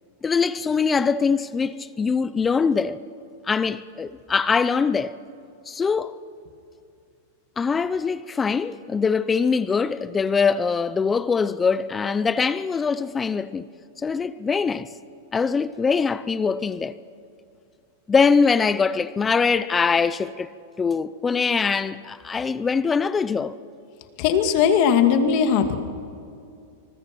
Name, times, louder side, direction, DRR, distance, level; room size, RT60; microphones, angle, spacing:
voice 1, 0.2-3.0 3.5-5.1 5.7-6.1 7.6-13.7 14.0-14.9 15.3-16.9 18.1-20.5 20.8-23.5, left 5 dB, 15° left, 0.6 m, -22 dB
voice 2, 24.2-25.7, left 7 dB, 50° left, 2.3 m, -19 dB
25.0 x 20.5 x 6.1 m
hypercardioid pair, 135°, 0 cm